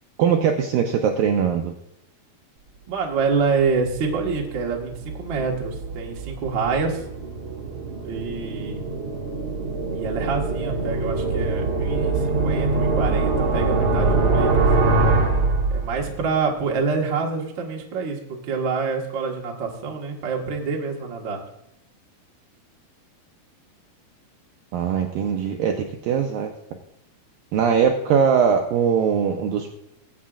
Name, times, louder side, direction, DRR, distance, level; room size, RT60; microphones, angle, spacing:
voice 1, 0.2-1.7 24.7-26.5 27.5-29.7, right 7 dB, 85° right, 3 dB, 2.0 m, -21 dB
voice 2, 2.9-7.0 8.0-8.8 9.9-15.0 15.7-21.4, right 5 dB, 65° right, -1 dB, 1.1 m, -26 dB
sound 1, 3.8-16.3, right 3 dB, 45° right, 1.6 m, -24 dB
22.0 x 8.4 x 2.5 m, 0.84 s
omnidirectional pair, 4.9 m